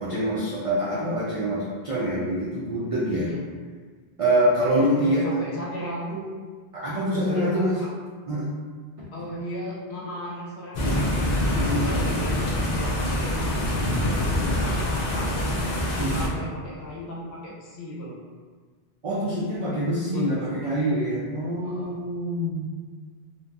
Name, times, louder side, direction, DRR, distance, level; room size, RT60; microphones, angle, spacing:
voice 1, 0.0-3.3 4.2-5.4 6.7-7.8 8.3-8.5 11.5-11.9 16.0-16.3 19.0-22.7, equal, 60° right, -7 dB, 0.3 m, -25 dB
voice 2, 3.1-3.4 4.6-6.4 7.1-7.9 9.1-11.2 11.6-14.3 14.6-15.7 16.1-18.2 20.1-21.0 21.6-21.9, left 1 dB, 85° left, -6 dB, 1.0 m, -36 dB
sound 1, 10.7-16.3, left 1 dB, 55° left, 0.5 m, -25 dB
2.8 x 2.2 x 2.4 m, 1.5 s
omnidirectional pair, 1.1 m